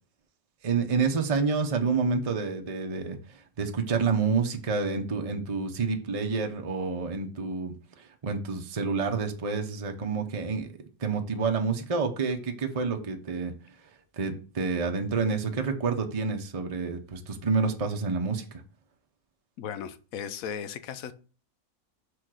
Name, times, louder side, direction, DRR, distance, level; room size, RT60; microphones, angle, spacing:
voice 1, 0.6-10.7 11.0-13.5 14.2-18.6, right 4 dB, 30° right, 3 dB, 0.8 m, -28 dB
voice 2, 19.6-21.1, left 8 dB, 75° left, 12 dB, 1.1 m, -36 dB
6.3 x 3.8 x 6.2 m, 0.38 s
omnidirectional pair, 1.5 m